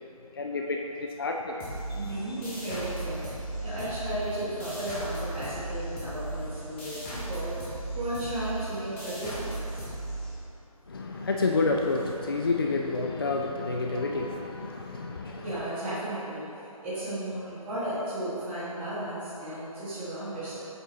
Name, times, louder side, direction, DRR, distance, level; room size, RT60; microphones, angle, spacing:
voice 1, 0.4-1.7 3.6-3.8 10.9-15.4, left 3 dB, 40° left, 2 dB, 0.4 m, -29 dB
sound 1, 1.6-10.8, right 1 dB, 20° left, 1.3 m, -36 dB
voice 2, 1.9-9.9 15.3-20.6, right 1 dB, 10° right, -14 dB, 1.5 m, -35 dB
7.5 x 5.4 x 3.1 m, 2.9 s
figure-of-eight pair, 150°, 19 cm